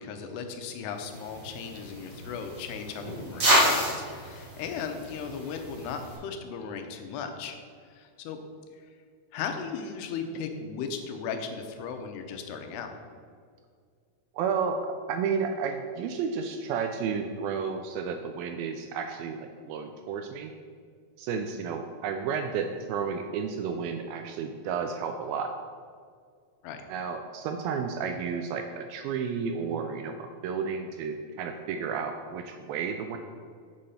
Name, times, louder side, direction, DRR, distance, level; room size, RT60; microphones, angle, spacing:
voice 1, 0.0-7.6 7.9-8.4 9.3-12.9 26.6-26.8, left 6 dB, 85° left, 6 dB, 2.9 m, -36 dB
sound 1, 1.0-6.2, equal, 35° right, 2.5 m, -29 dB
voice 2, 14.4-14.8 15.1-20.5 21.2-25.5 26.9-33.2, right 6 dB, 85° right, 6 dB, 2.2 m, -32 dB
7.5 x 6.8 x 5.7 m, 2.1 s
omnidirectional pair, 4.6 m